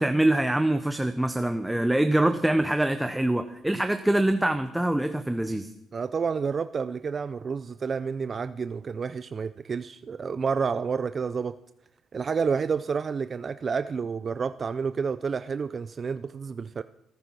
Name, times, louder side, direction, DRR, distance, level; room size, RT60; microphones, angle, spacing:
voice 1, 0.0-5.7, right 1 dB, 5° right, 9 dB, 0.8 m, -24 dB
voice 2, 5.9-11.6 12.1-16.8, right 5 dB, 40° right, 12 dB, 0.4 m, -29 dB
17.0 x 9.8 x 6.1 m, 0.88 s
cardioid pair, 90°, 0 cm